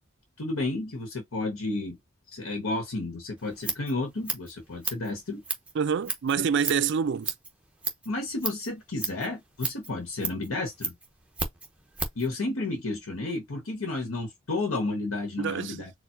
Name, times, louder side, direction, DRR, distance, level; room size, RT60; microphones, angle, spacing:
voice 1, 0.4-2.0 2.3-5.4 8.0-11.0 12.1-15.9, left 2 dB, 85° left, 1.1 m, -32 dB
Scissors, 3.4-12.3, right 3 dB, 5° right, 0.8 m, -35 dB
voice 2, 5.7-7.3 15.4-15.9, right 6 dB, 55° right, 0.4 m, -26 dB
4.4 x 2.3 x 2.5 m
head